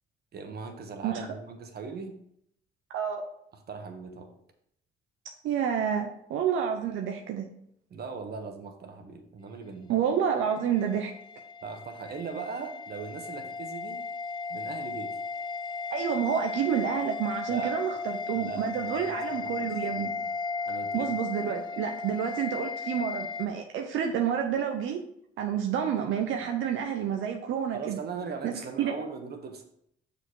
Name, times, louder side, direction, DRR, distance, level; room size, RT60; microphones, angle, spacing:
voice 1, 0.3-2.1 3.5-4.3 7.9-9.9 11.6-14.0 14.5-15.2 17.5-17.8 18.3-20.2 20.7-21.2 27.7-29.6, right 5 dB, 55° right, 5 dB, 1.3 m, -39 dB
voice 2, 5.2-7.5 9.9-11.1 15.9-20.1 20.9-25.0 25.4-28.0 28.4-29.0, right 8 dB, 85° right, 3 dB, 0.7 m, -29 dB
sound 1, 10.4-23.5, left 4 dB, 25° left, 0.4 m, -36 dB
6.4 x 5.2 x 4.7 m, 0.71 s
cardioid pair, 90°, 20 cm